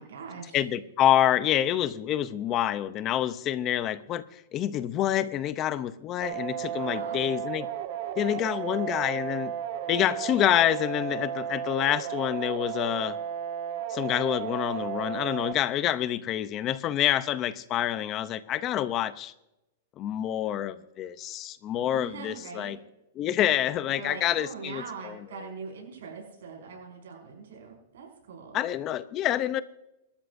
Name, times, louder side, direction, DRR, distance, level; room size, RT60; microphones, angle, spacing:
voice 1, 0.0-0.6 6.7-7.3 21.9-22.7 23.9-28.6, right 5 dB, 80° right, 0 dB, 5.5 m, -42 dB
voice 2, 0.5-7.7 8.2-9.5 9.9-13.2 13.9-19.3 20.0-22.8 23.2-25.2 28.5-29.6, left 11 dB, 25° left, 14 dB, 0.6 m, -27 dB
sound 1, 6.2-15.5, right 9 dB, 45° right, 1.6 m, -34 dB
26.0 x 13.0 x 2.6 m, 0.89 s
supercardioid pair, 170°, 0 cm